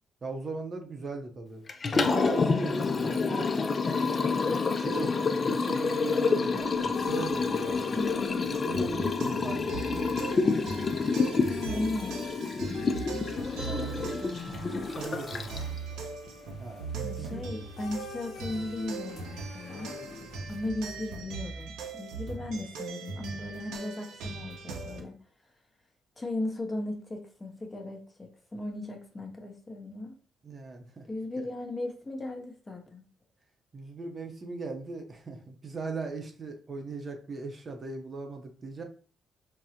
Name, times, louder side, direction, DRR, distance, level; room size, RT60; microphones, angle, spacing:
voice 1, 0.2-3.5 4.7-8.0 8.6-10.4 11.7-11.8 13.6-14.4 14.7-15.6 16.6-16.9 17.2-17.4 30.4-31.1 33.7-38.8, right 3 dB, 40° right, 4 dB, 0.6 m, -39 dB
Liquid, 1.7-15.8, left 4 dB, 40° left, 0.3 m, -28 dB
sound 1, 6.6-20.7, left 4 dB, 60° left, 0.7 m, -47 dB
voice 2, 7.9-8.6 11.5-12.3 17.0-20.0 20.5-25.2 26.2-30.2 31.1-33.0, left 2 dB, 20° left, 2 dB, 0.7 m, -36 dB
sound 2, 8.5-25.0, right 4 dB, 85° right, 0.5 m, -40 dB
3.6 x 2.0 x 2.8 m, 0.40 s
cardioid pair, 90°, 0 cm